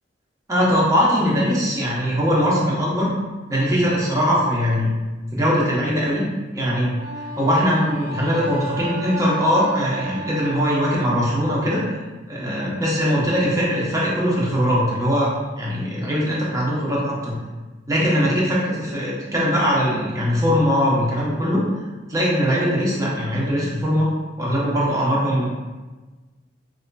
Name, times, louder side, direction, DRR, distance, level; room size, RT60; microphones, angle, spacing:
voice 1, 0.5-3.1 3.5-4.9 5.3-6.2 6.5-11.8 12.3-15.3 15.6-17.4 17.9-21.6 22.1-24.1 24.4-25.5, equal, 15° right, -6 dB, 0.8 m, -21 dB
Wind instrument woodwind instrument, 6.9-11.2, right 1 dB, 65° right, 0.8 m, -33 dB
4.2 x 2.5 x 2.2 m, 1.2 s
head